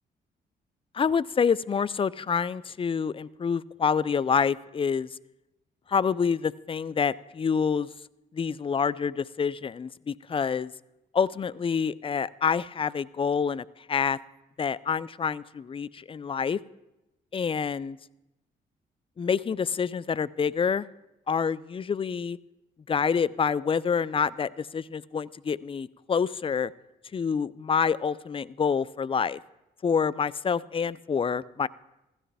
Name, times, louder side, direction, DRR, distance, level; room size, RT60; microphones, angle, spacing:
voice 1, 0.9-5.1 5.9-7.9 8.3-10.7 11.1-14.2 14.6-16.6 17.3-18.0 19.2-20.9 21.3-22.4 22.9-26.7 27.1-29.4 29.8-31.7, left 6 dB, 30° left, 21 dB, 0.4 m, -27 dB
15.5 x 12.5 x 3.4 m, 0.95 s
supercardioid pair, 60°, 20 cm